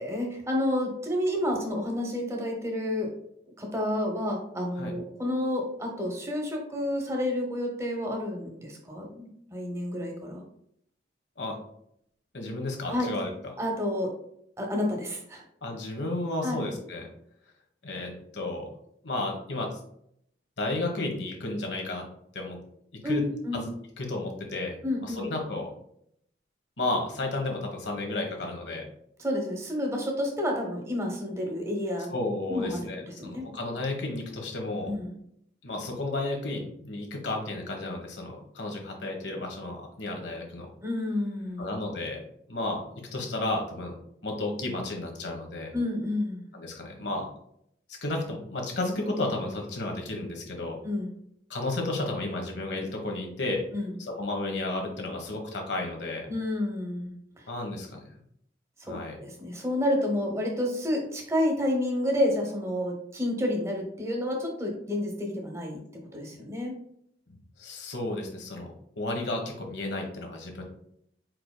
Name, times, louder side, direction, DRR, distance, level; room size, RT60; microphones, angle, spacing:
voice 1, 0.0-3.1 3.6-10.5 12.9-13.1 13.6-14.1 14.6-15.4 16.4-16.6 23.0-23.6 24.8-25.3 29.2-32.1 32.5-33.5 34.9-35.1 40.8-41.7 45.7-46.5 50.8-51.1 53.7-53.9 56.3-57.5 58.8-65.8 66.1-66.8, left 1 dB, 15° right, 1 dB, 1.0 m, -30 dB
voice 2, 12.3-13.3 15.6-17.1 17.8-18.7 19.0-19.8 20.6-22.0 22.3-22.6 22.9-23.2 23.5-23.7 24.0-25.7 26.8-28.8 32.1-34.9 35.6-40.7 41.6-42.2 42.5-43.9 44.2-45.7 46.5-47.3 48.0-50.8 51.5-53.6 54.2-56.3 57.5-58.2 58.8-59.2 67.6-70.6, left 2 dB, 85° left, 1 dB, 1.2 m, -32 dB
4.8 x 4.7 x 2.2 m, 0.71 s
head